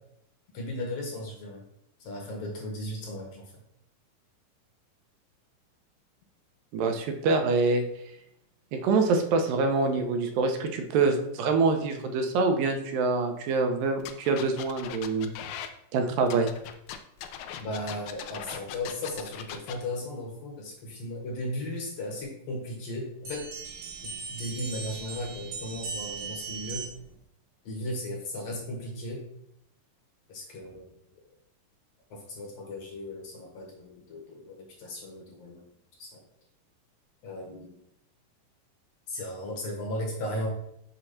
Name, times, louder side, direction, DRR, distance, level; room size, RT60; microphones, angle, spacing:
voice 1, 0.5-1.6 2.0-3.5 17.6-23.5 24.3-26.8 27.6-29.2 30.3-30.9 32.1-35.6 36.0-36.2 37.2-37.8 39.1-40.5, left 1 dB, 65° left, 0 dB, 1.8 m, -36 dB
voice 2, 6.7-7.8 8.7-15.3 15.9-16.5, right 4 dB, 85° right, 5 dB, 2.5 m, -25 dB
sound 1, 14.0-15.7 16.3-19.7, left 10 dB, 90° left, 1.6 m, -40 dB
sound 2, 23.2-27.2, right 5 dB, 65° right, 2.6 m, -38 dB
6.6 x 2.9 x 5.7 m, 0.76 s
omnidirectional pair, 3.9 m